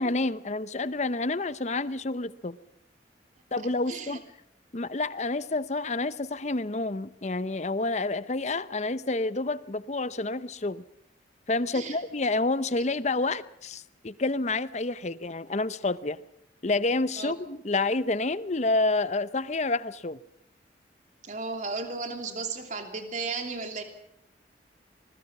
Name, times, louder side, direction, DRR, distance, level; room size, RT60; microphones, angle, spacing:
voice 1, 0.0-2.6 3.5-4.2 4.7-10.8 11.5-16.2 16.6-20.2, left 2 dB, 40° left, 0.8 m, -29 dB
voice 2, 3.9-4.2 7.8-7.9 11.7-12.0 17.2-17.3 21.2-23.8, right 4 dB, 45° right, 3.0 m, -34 dB
25.5 x 21.0 x 6.0 m
head